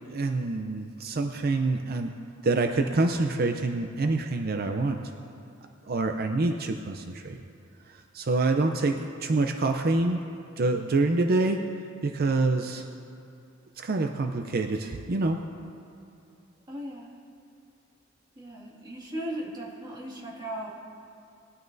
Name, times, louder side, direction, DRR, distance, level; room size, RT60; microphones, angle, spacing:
voice 1, 0.0-2.1 2.4-5.0 5.9-7.4 7.9-10.2 10.6-11.6 12.0-12.8 13.8-15.4, right 3 dB, 50° right, 5 dB, 0.5 m, -26 dB
voice 2, 16.7-17.1 18.4-20.7, right 1 dB, 20° right, -4 dB, 2.0 m, -37 dB
19.5 x 12.5 x 2.6 m, 2.6 s
head